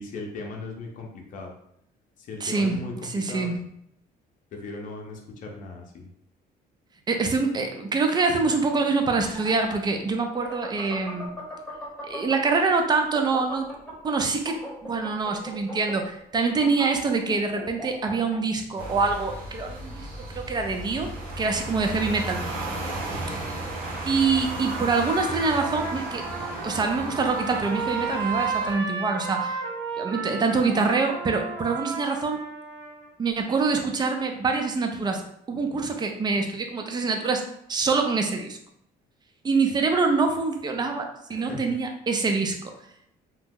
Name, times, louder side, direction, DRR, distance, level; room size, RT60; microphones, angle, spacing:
voice 1, 0.0-1.5 2.2-3.5 4.5-6.1 22.7-23.2 41.3-41.6, left 3 dB, 50° left, 1 dB, 0.7 m, -38 dB
voice 2, 2.4-3.6 7.1-11.4 12.1-13.7 14.0-14.6 14.8-21.1 21.4-22.4 24.1-26.2 26.6-29.6 30.0-32.4 33.2-35.2 35.5-37.4 37.7-38.6 39.4-42.6, right 4 dB, 25° right, 4 dB, 0.5 m, -25 dB
sound 1, 9.2-12.7 13.0-18.4, equal, 5° left, 1.0 m, -38 dB
sound 2, 18.8-28.7, right 2 dB, 60° right, 1.0 m, -34 dB
Trumpet, 24.6-33.1, right 4 dB, 80° right, 0.7 m, -33 dB
2.8 x 2.0 x 3.5 m, 0.73 s
cardioid pair, 110°, 17 cm